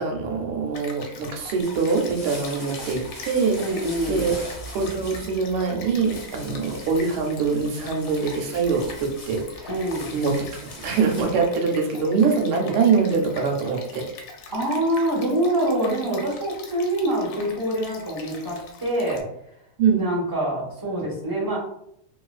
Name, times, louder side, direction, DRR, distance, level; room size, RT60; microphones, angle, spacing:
voice 1, 0.0-9.7 10.1-10.5 10.8-14.0 19.8-20.0, right 5 dB, 80° right, 2 dB, 1.5 m, -24 dB
Stream, 0.7-19.2, left 4 dB, 85° left, 1.5 m, -42 dB
sound 1, 1.3-11.5, equal, 40° left, 0.6 m, -41 dB
voice 2, 3.6-4.4 9.7-10.2 14.5-19.2 20.0-21.6, right 1 dB, 20° right, -6 dB, 0.6 m, -25 dB
3.1 x 3.0 x 2.3 m, 0.74 s
omnidirectional pair, 2.3 m